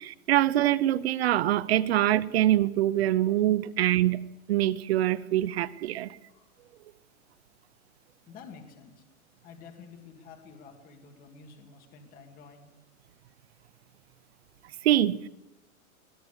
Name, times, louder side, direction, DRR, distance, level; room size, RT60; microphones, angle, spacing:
voice 1, 0.0-4.2 4.5-6.2 14.8-15.3, right 13 dB, 45° right, 16 dB, 0.8 m, -24 dB
voice 2, 8.3-9.0 9.4-12.7, left 5 dB, 20° left, 4 dB, 2.0 m, -50 dB
21.0 x 18.5 x 8.1 m, 0.93 s
supercardioid pair, 170°, 43 cm